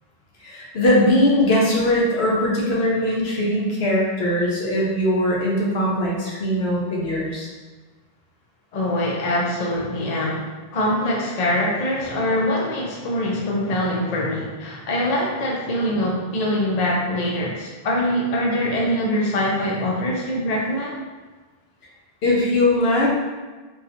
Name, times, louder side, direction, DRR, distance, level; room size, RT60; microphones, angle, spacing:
voice 1, 0.4-7.5 22.2-23.1, left 1 dB, 85° left, -4 dB, 1.1 m, -20 dB
voice 2, 8.7-21.1, left 1 dB, 45° left, -3 dB, 0.7 m, -23 dB
3.7 x 2.8 x 2.7 m, 1.3 s
omnidirectional pair, 1.0 m